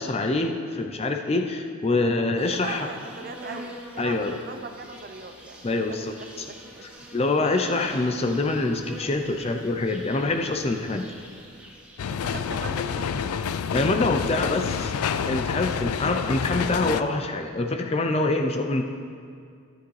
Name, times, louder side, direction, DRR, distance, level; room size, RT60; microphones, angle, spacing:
voice 1, 0.0-2.9 4.0-4.4 5.6-6.1 7.1-11.1 13.7-14.9 15.3-18.8, left 2 dB, 30° left, 5 dB, 0.5 m, -25 dB
voice 2, 2.3-7.1 12.1-13.4, right 3 dB, 45° right, 6 dB, 0.6 m, -40 dB
Insect, 2.4-12.2, equal, 5° right, 1.2 m, -45 dB
sound 1, 12.0-17.0, left 7 dB, 85° left, 0.4 m, -28 dB
12.5 x 9.2 x 3.2 m, 2.2 s
head